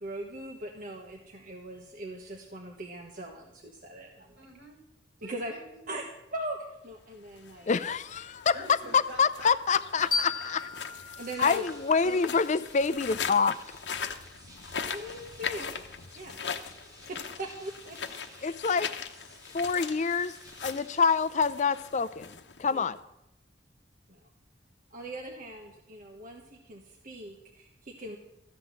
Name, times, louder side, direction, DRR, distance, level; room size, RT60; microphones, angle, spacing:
voice 1, 0.0-4.4 5.2-5.5 5.9-6.0 6.3-6.6 6.8-7.7 11.2-11.6 12.0-12.2 14.9-16.4 17.1-18.6 22.7-22.9 24.1-24.2 24.9-28.2, right 1 dB, 50° right, 1 dB, 1.3 m, -40 dB
voice 2, 4.4-4.8 5.2-5.9 8.5-10.6, equal, 75° right, 1 dB, 5.0 m, -47 dB
sound 1, 7.3-23.0, left 6 dB, 75° left, 0.9 m, -40 dB
voice 3, 7.7-8.5 8.9-10.6 11.4-13.6 18.4-18.9 19.5-20.4 20.6-23.0, left 5 dB, 40° left, 15 dB, 0.5 m, -26 dB
sound 2, 10.1-12.9, left 4 dB, 25° left, 3.5 m, -36 dB
sound 3, 11.2-21.2, equal, 20° right, 3.0 m, -54 dB
14.5 x 6.0 x 9.6 m, 0.88 s
head